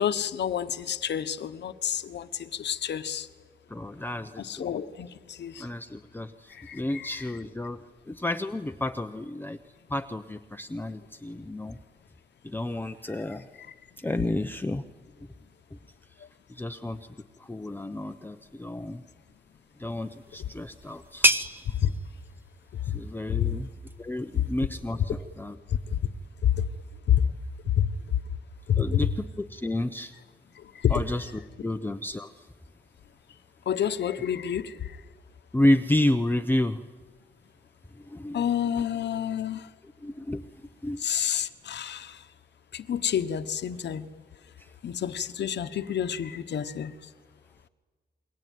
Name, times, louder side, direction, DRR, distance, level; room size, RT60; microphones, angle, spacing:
voice 1, 0.0-3.3 4.4-5.7 6.6-7.3 21.8-21.9 27.1-27.2 27.8-27.9 30.8-31.0 33.7-34.7 38.3-39.6 41.0-42.2 42.7-44.1 44.8-46.9, left 9 dB, 85° left, 10 dB, 1.2 m, -29 dB
voice 2, 3.7-4.7 5.6-7.8 8.1-9.6 9.9-11.8 12.4-13.5 14.0-14.8 16.5-17.0 17.4-19.0 19.8-21.3 22.8-23.7 24.0-25.5 28.8-29.1 29.4-30.1 30.9-31.3 31.6-32.5 35.5-36.8 37.9-38.4 40.0-40.4 40.8-41.0 44.6-44.7, left 1 dB, 10° left, 7 dB, 0.8 m, -30 dB
sound 1, 19.9-25.3, right 1 dB, 10° right, 1.0 m, -32 dB
28.5 x 22.5 x 9.3 m, 1.3 s
wide cardioid pair, 120°, 18 cm